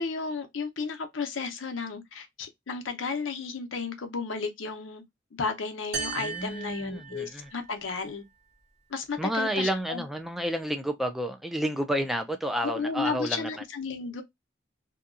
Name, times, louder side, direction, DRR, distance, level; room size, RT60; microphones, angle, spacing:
voice 1, 0.0-5.0 5.4-8.2 8.9-10.0 12.6-14.2, left 4 dB, 90° left, 0.7 m, -33 dB
sound 1, 5.9-7.7, right 5 dB, 80° right, 1.3 m, -36 dB
voice 2, 6.2-7.5 9.2-13.5, equal, ahead, 0.4 m, -30 dB
2.8 x 2.3 x 2.4 m
head